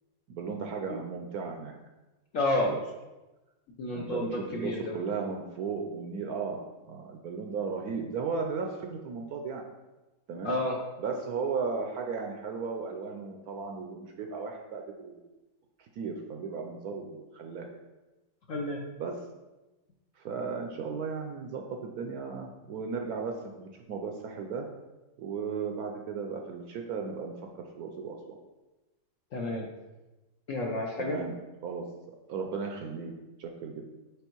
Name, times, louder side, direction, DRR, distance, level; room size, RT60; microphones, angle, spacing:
voice 1, 0.3-1.7 2.7-2.8 3.9-9.6 10.3-10.6 11.0-15.3 15.8-17.8 19.0-19.2 20.2-24.7 25.2-27.3 27.8-28.4 31.0-31.3 31.6-31.9 32.3-33.1 33.4-33.8, right 5 dB, 70° right, 3 dB, 0.9 m, -35 dB
voice 2, 2.3-2.7 3.8-4.9 10.4-10.8 18.5-18.8 29.3-29.7 30.5-31.2, left 2 dB, 60° left, -1 dB, 0.9 m, -30 dB
5.3 x 4.4 x 4.5 m, 1.1 s
omnidirectional pair, 2.0 m